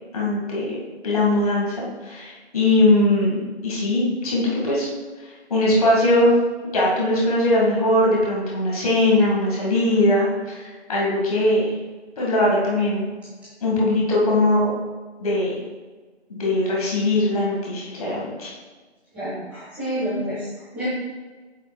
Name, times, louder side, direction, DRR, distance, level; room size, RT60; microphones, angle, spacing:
voice 1, 0.1-0.8 1.0-4.9 5.5-6.3 6.7-11.7 12.2-13.1 13.6-14.7 15.2-15.5 16.3-18.5, left 1 dB, 35° left, -4 dB, 2.0 m, -20 dB
voice 2, 19.1-20.9, equal, 5° right, -13 dB, 1.7 m, -29 dB
7.9 x 7.1 x 2.3 m, 1.4 s
figure-of-eight pair, 155°, 34 cm